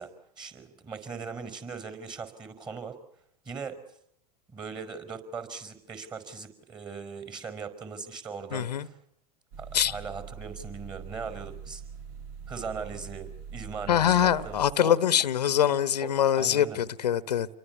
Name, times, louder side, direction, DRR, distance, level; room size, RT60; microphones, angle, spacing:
voice 1, 0.0-3.0 3.4-3.8 4.5-9.0 9.6-11.8 12.5-14.9 16.0-16.8, right 5 dB, 20° right, 5.0 m, -39 dB
voice 2, 8.5-8.9 9.7-10.0 13.9-17.5, left 10 dB, 75° left, 1.2 m, -24 dB
sound 1, 9.5-14.7, right 7 dB, 50° right, 2.3 m, -43 dB
29.0 x 23.5 x 7.1 m
hypercardioid pair, 100°, 21 cm